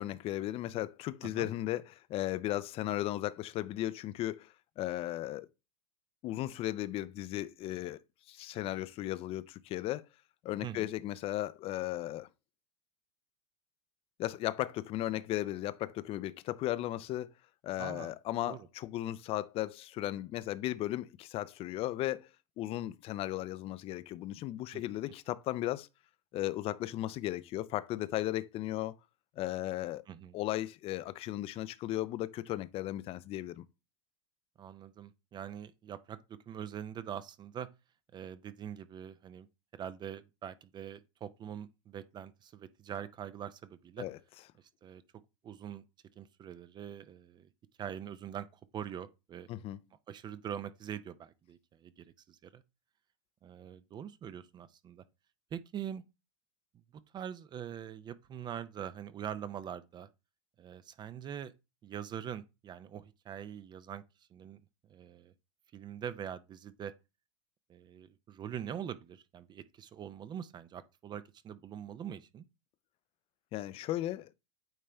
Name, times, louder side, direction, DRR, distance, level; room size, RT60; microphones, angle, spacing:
voice 1, 0.0-5.5 6.2-8.0 8.3-10.1 10.4-12.3 14.2-17.3 17.6-22.3 22.6-25.9 26.3-28.9 29.4-30.0 30.3-33.6 44.0-44.2 49.5-49.8 73.5-74.3, left 14 dB, 35° left, 0.5 m, -36 dB
voice 2, 17.8-18.1 18.5-18.6 24.7-24.8 30.1-30.4 34.6-37.7 38.1-39.5 39.7-44.1 44.8-45.0 45.4-45.8 46.2-47.5 47.8-48.5 48.7-49.5 50.1-52.6 53.4-55.0 55.5-56.0 57.1-60.1 60.6-61.5 61.8-64.0 64.3-64.6 64.9-65.3 65.7-66.9 67.7-72.4, right 9 dB, 25° right, 0.5 m, -43 dB
8.9 x 3.2 x 3.4 m
supercardioid pair, 120°, 16 cm